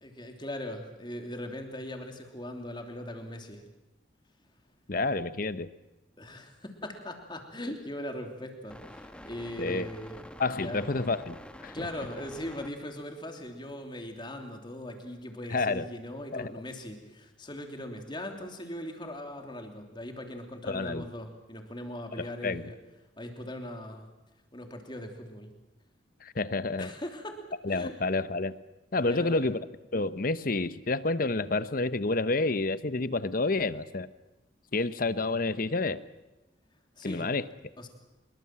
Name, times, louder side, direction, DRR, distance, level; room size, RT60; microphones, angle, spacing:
voice 1, 0.0-3.6 6.2-10.2 10.5-10.8 11.7-22.8 23.2-24.1 24.5-25.5 26.8-27.4 27.7-27.9 28.9-29.4 37.0-37.3 37.8-37.9, left 1 dB, 25° left, 4 dB, 3.1 m, -40 dB
voice 2, 4.9-5.7 9.6-9.9 10.4-11.4 11.6-11.7 15.5-15.9 16.3-16.5 20.6-21.0 22.4-22.6 26.2-26.9 27.6-28.5 28.9-29.6 29.9-34.1 34.7-36.0 37.0-37.4, left 3 dB, 50° left, 14 dB, 0.9 m, -29 dB
sound 1, 8.7-12.8 13.5-13.6, left 1 dB, 5° left, 1.4 m, -47 dB
24.5 x 22.0 x 7.6 m, 1.0 s
head